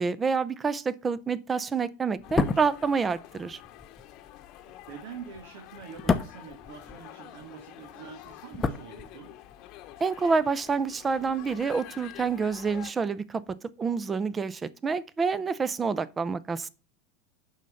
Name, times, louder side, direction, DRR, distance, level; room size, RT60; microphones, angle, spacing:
voice 1, 0.0-3.6 10.0-16.7, right 5 dB, 20° right, 0.6 m, -28 dB
sound 1, 2.2-12.9, left 13 dB, 45° left, 1.0 m, -48 dB
sound 2, 2.2-7.5 7.7-9.6 9.8-10.0, left 4 dB, 15° left, 0.8 m, -32 dB
voice 2, 4.6-9.3, right 7 dB, 75° right, 1.8 m, -45 dB
7.3 x 5.6 x 6.5 m
supercardioid pair, 135°, 0 cm